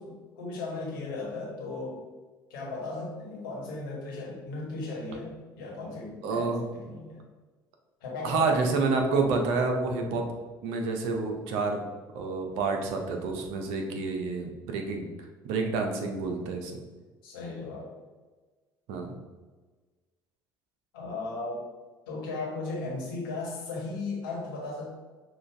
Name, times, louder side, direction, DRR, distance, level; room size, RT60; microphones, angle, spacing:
voice 1, 0.0-2.0 2.5-7.3 8.0-8.6 17.2-17.9 20.9-21.7 22.1-25.0, left 3 dB, 75° left, -3 dB, 1.4 m, -36 dB
voice 2, 6.2-6.6 8.2-10.3 10.6-11.8 12.1-15.1 15.4-16.7 18.9-19.1, right 4 dB, 65° right, 3 dB, 0.7 m, -28 dB
6.2 x 2.4 x 3.4 m, 1.3 s
figure-of-eight pair, 60°, 11 cm